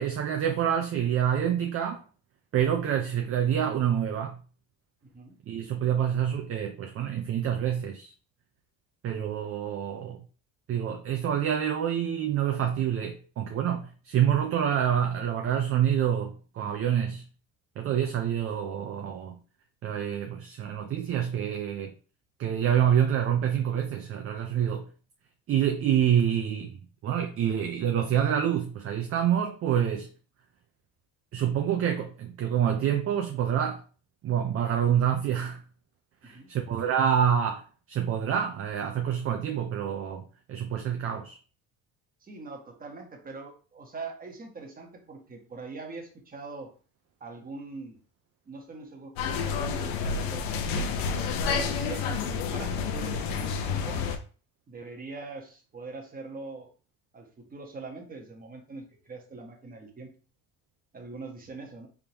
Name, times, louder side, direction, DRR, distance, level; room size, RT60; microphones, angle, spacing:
voice 1, 0.0-2.0 2.5-4.4 5.5-8.1 9.0-10.2 10.7-17.2 17.8-19.4 19.8-21.9 22.4-24.9 25.5-30.1 31.3-33.8 34.2-35.6 36.2-37.6 37.9-41.4, right 9 dB, 40° right, 0.6 m, -27 dB
voice 2, 42.2-46.7 47.2-48.0 48.5-50.9 51.5-54.1 54.7-56.7 57.1-60.1 60.9-61.9, right 3 dB, 25° right, 1.2 m, -42 dB
sound 1, 49.2-54.2, left 5 dB, 85° left, 0.7 m, -29 dB
3.6 x 3.5 x 2.9 m
cardioid pair, 110°, 34 cm